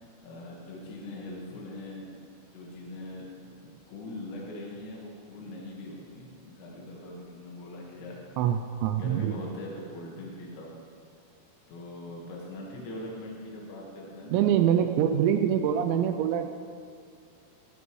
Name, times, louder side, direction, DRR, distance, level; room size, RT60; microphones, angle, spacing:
voice 1, 0.2-2.2 2.5-8.3 9.0-10.8 11.7-14.6, left 1 dB, 90° left, -3 dB, 4.4 m, -41 dB
voice 2, 8.4-9.3 14.3-16.5, right 9 dB, 90° right, 7 dB, 2.5 m, -24 dB
15.0 x 15.0 x 3.2 m, 2.3 s
omnidirectional pair, 5.7 m